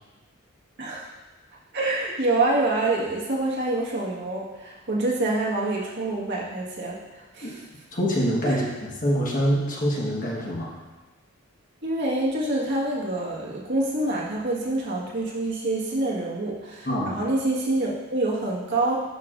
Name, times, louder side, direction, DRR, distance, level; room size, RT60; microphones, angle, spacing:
voice 1, 0.8-1.1 1.7-7.6 8.4-8.6 11.8-19.0, right 2 dB, 55° right, -4 dB, 1.6 m, -26 dB
voice 2, 7.9-8.6 9.0-10.7 16.8-17.1, equal, 40° left, -3 dB, 1.4 m, -24 dB
10.5 x 6.1 x 2.5 m, 1.2 s
head